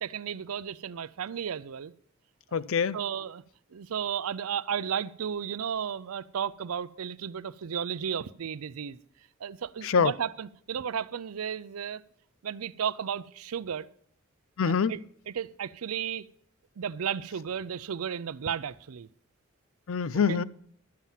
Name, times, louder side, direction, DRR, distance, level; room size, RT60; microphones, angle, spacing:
voice 1, 0.0-1.9 2.5-2.6 2.9-3.4 3.7-9.0 9.4-12.0 12.4-13.9 14.6-15.0 15.3-16.3 16.8-19.1 20.3-20.4, right 8 dB, 85° right, 0.5 m, -34 dB
voice 2, 2.5-3.0 9.8-10.1 14.6-14.9 19.9-20.4, left 6 dB, 70° left, 0.5 m, -25 dB
12.5 x 7.3 x 5.7 m
head